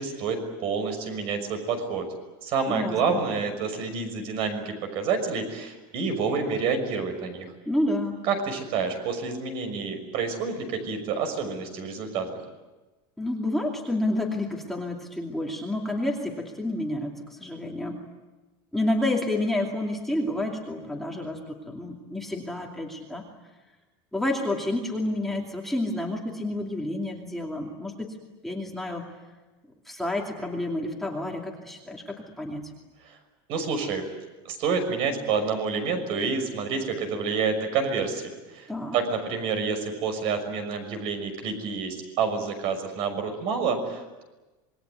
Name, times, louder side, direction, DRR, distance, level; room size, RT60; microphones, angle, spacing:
voice 1, 0.0-2.1 2.4-7.5 8.2-12.4 33.0-33.2 33.5-34.1 34.4-38.2 38.5-38.7 38.9-44.2, right 5 dB, 50° right, 7 dB, 6.1 m, -28 dB
voice 2, 2.7-3.2 7.7-8.2 13.2-18.0 18.7-23.2 24.1-28.2 28.4-29.0 29.9-32.7 38.7-39.0, left 1 dB, ahead, -1 dB, 2.6 m, -29 dB
27.0 x 21.5 x 9.5 m, 1.1 s
cardioid pair, 170°, 12 cm